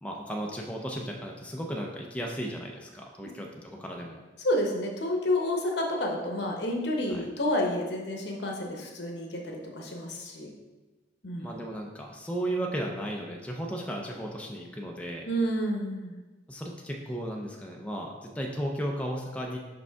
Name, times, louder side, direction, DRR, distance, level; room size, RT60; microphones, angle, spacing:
voice 1, 0.0-4.2 7.2-7.3 11.4-15.3 16.5-19.6, right 1 dB, 5° left, 0 dB, 0.5 m, -35 dB
voice 2, 4.4-10.5 11.2-11.5 15.2-16.2, left 1 dB, 75° left, 1 dB, 0.9 m, -30 dB
5.3 x 5.1 x 3.5 m, 1.2 s
head